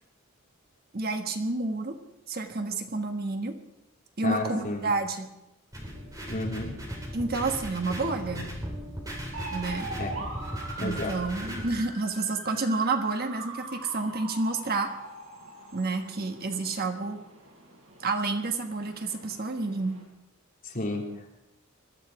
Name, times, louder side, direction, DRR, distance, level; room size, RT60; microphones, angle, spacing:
voice 1, 0.9-2.0 2.3-3.6 4.2-5.3 7.1-8.5 9.5-9.9 10.8-14.9 15.7-17.2 18.0-20.0, right 3 dB, 45° right, 5 dB, 1.4 m, -29 dB
voice 2, 4.2-4.9 6.3-6.7 10.0-10.1 10.8-11.1 20.6-21.3, left 2 dB, 40° left, -1 dB, 3.3 m, -32 dB
sound 1, 5.7-11.7, equal, 15° right, 4.0 m, -37 dB
sound 2, 9.3-20.0, right 2 dB, 80° right, 7.0 m, -42 dB
21.5 x 13.5 x 4.9 m, 0.90 s
head